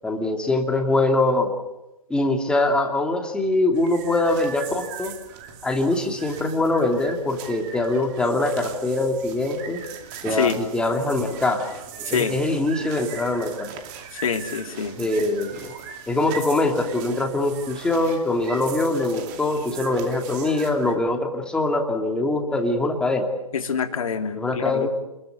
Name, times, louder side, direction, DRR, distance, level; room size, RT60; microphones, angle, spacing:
voice 1, 0.0-1.5 2.1-5.1 5.6-9.8 10.2-11.7 12.1-13.8 15.0-15.7 16.1-23.3 24.3-24.9, left 2 dB, 5° left, 3 dB, 2.6 m, -23 dB
sound 1, 3.7-21.0, right 8 dB, 25° right, 2.6 m, -39 dB
voice 2, 10.3-10.6 12.0-12.4 14.1-15.0 23.5-24.9, left 6 dB, 55° left, 5 dB, 3.1 m, -26 dB
28.5 x 21.5 x 8.1 m, 0.96 s
figure-of-eight pair, 140°, 20 cm